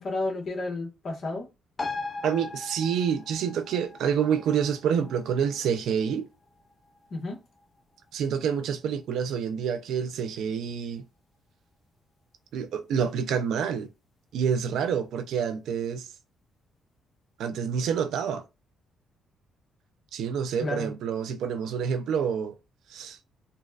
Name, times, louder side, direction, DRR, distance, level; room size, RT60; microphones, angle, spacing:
voice 1, 0.0-1.5 7.1-7.4 20.6-20.9, left 2 dB, 55° left, 1.3 m, -31 dB
sound 1, 1.8-8.7 9.1-9.2, left 3 dB, 25° left, 0.4 m, -40 dB
voice 2, 2.2-6.3 8.1-11.1 12.5-13.9 14.3-16.1 17.4-18.4 20.1-22.6 22.9-23.2, right 7 dB, 80° right, 0.4 m, -28 dB
4.0 x 2.2 x 2.3 m
cardioid pair, 90°, 0 cm